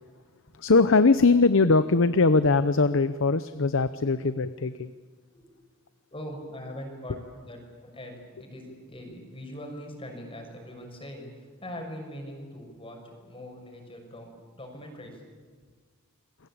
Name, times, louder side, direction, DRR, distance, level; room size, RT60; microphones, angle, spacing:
voice 1, 0.6-4.9, left 3 dB, 65° left, 13 dB, 0.8 m, -21 dB
voice 2, 6.1-15.2, equal, 25° left, 2 dB, 6.2 m, -42 dB
28.5 x 22.0 x 8.8 m, 1.5 s
head